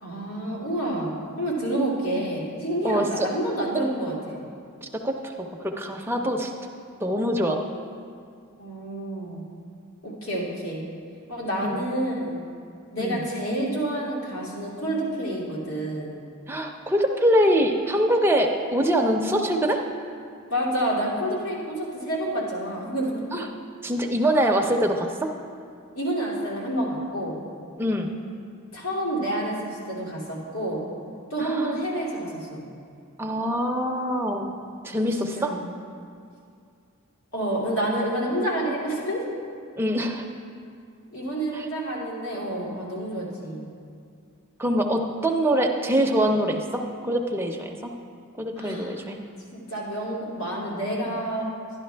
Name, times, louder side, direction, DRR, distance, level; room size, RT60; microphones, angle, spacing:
voice 1, 0.0-4.4 8.6-9.4 10.0-10.8 11.3-12.5 12.9-16.2 20.5-23.3 25.9-27.4 28.7-30.8 31.3-32.6 35.0-35.6 37.3-39.2 41.1-43.7 48.6-48.9 49.5-51.5, right 1 dB, 80° left, -5 dB, 2.5 m, -29 dB
voice 2, 2.8-3.3 5.0-6.5 7.0-7.6 11.6-11.8 13.0-13.2 16.5-19.8 23.3-23.5 23.8-25.3 27.8-28.1 31.4-31.8 33.2-34.5 34.8-35.5 39.8-40.3 41.5-41.7 44.6-47.9 48.4-49.2, equal, 10° right, 2 dB, 0.6 m, -24 dB
12.0 x 10.5 x 3.4 m, 2.4 s
head